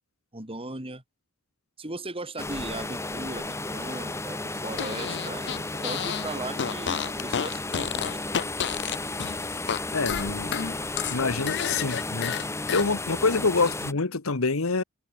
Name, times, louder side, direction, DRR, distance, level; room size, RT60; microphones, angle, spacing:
voice 1, 0.3-1.0 1.8-5.5 5.8-8.4, right 2 dB, 25° right, 4.3 m, -38 dB
sound 1, 2.4-13.9, left 2 dB, 15° left, 1.3 m, -33 dB
Fart, 4.7-6.3 6.5-9.8 10.1-12.9, left 8 dB, 55° left, 0.6 m, -31 dB
voice 2, 9.9-10.5 11.1-12.4 12.7-14.8, left 4 dB, 80° left, 1.2 m, -26 dB
head